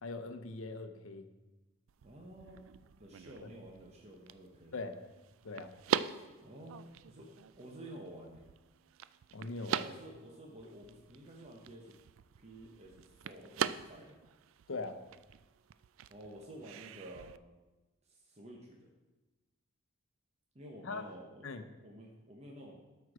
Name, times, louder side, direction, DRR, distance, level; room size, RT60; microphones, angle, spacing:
voice 1, 0.0-1.3 3.4-3.5 4.7-5.0 5.4-5.7 9.3-9.8 14.7-15.0 20.8-21.0 21.4-21.6, left 3 dB, 75° left, 7 dB, 0.8 m, -41 dB
sound 1, 1.9-17.4, right 8 dB, 70° right, 0.3 m, -42 dB
voice 2, 2.0-2.7 3.0-4.7 6.4-7.3 7.5-8.4 9.7-11.9 12.4-14.2 16.1-17.3 18.0-18.9 20.5-22.8, right 1 dB, 30° right, -1 dB, 1.0 m, -51 dB
12.5 x 4.6 x 4.9 m, 1.1 s
head